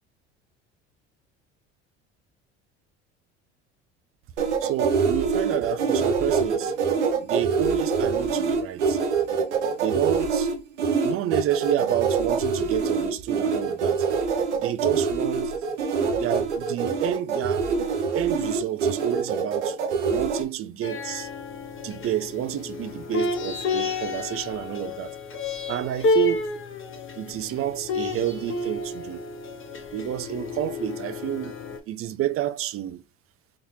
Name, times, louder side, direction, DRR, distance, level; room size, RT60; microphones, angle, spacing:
sound 1, 4.4-20.4, right 5 dB, 85° right, 0.8 m, -25 dB
voice 1, 4.6-6.7 7.2-9.0 9.8-10.5 11.0-14.1 14.6-15.5 16.1-17.9 18.1-19.8 20.1-21.3 21.8-25.1 25.7-26.5 27.1-29.3 29.9-31.6 31.9-33.0, right 12 dB, 40° right, 0.5 m, -29 dB
sound 2, 20.8-31.8, left 2 dB, 35° left, 1.1 m, -30 dB
4.1 x 2.6 x 3.0 m
hypercardioid pair, 65°, 34 cm